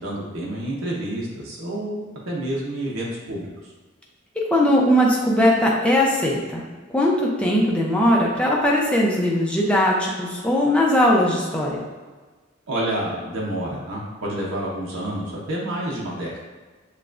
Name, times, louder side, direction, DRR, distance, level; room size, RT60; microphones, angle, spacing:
voice 1, 0.0-3.5 12.7-16.3, right 1 dB, 80° right, -4 dB, 0.9 m, -29 dB
voice 2, 4.4-6.6 6.9-11.8, left 1 dB, 5° left, -3 dB, 0.6 m, -19 dB
6.7 x 2.4 x 2.5 m, 1.3 s
head